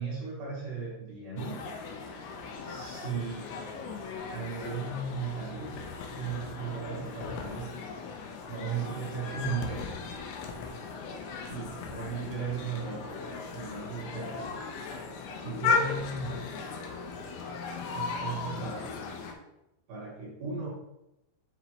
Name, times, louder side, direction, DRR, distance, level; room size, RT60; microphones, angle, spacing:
voice 1, 0.0-1.6 2.6-3.5 4.3-5.8 6.2-7.8 8.5-10.0 11.5-14.6 15.4-16.6 17.9-19.0 19.9-20.7, right 5 dB, 60° right, -6 dB, 2.4 m, -36 dB
sound 1, 1.4-19.3, left 5 dB, 80° left, 2.9 m, -37 dB
7.3 x 5.4 x 3.3 m, 0.88 s
omnidirectional pair, 5.8 m